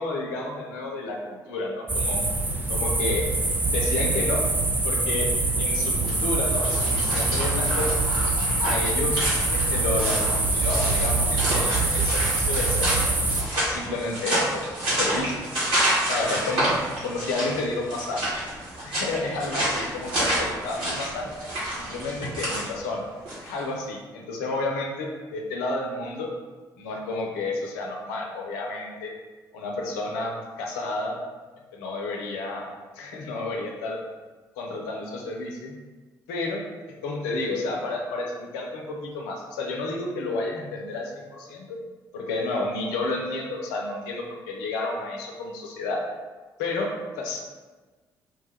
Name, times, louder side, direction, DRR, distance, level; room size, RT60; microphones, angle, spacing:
voice 1, 0.0-2.2 2.7-3.3 3.7-4.4 4.8-5.3 5.6-8.1 8.6-13.1 13.6-15.4 16.1-18.2 18.8-21.4 21.8-23.1 23.4-26.3 26.8-29.1 29.5-31.2 31.7-32.7 33.0-34.0 34.6-35.8 36.3-36.6 37.0-41.8 42.1-46.0 46.6-47.4, left 2 dB, 70° left, 0 dB, 0.5 m, -31 dB
sound 1, 1.9-13.4, right 2 dB, 20° right, 0.4 m, -24 dB
sound 2, 6.0-23.6, right 1 dB, 60° right, 1.3 m, -29 dB
3.0 x 2.2 x 3.3 m, 1.3 s
figure-of-eight pair, 45°, 10 cm